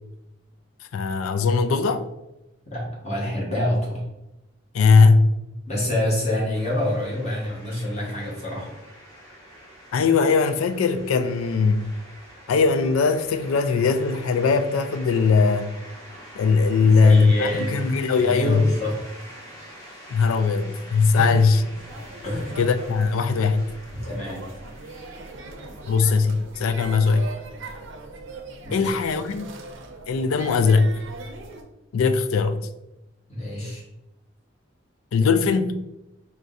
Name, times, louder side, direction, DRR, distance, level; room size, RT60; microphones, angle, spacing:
voice 1, 0.9-2.0 4.7-5.3 9.9-11.9 12.5-15.7 16.4-18.7 20.1-21.6 22.6-23.7 25.8-27.3 28.7-29.5 30.1-31.0 31.9-32.6 35.1-35.7, left 4 dB, 80° left, 0.4 m, -20 dB
voice 2, 2.7-4.0 5.7-8.7 16.8-17.8 18.2-19.0 21.1-21.3 22.2-22.6 23.9-24.4 28.6-28.9 33.3-33.8, left 1 dB, 35° left, 1.4 m, -27 dB
sound 1, 6.5-26.1, equal, 15° left, 0.9 m, -45 dB
sound 2, 21.7-31.6, right 3 dB, 65° right, 0.6 m, -41 dB
4.8 x 3.2 x 2.6 m
head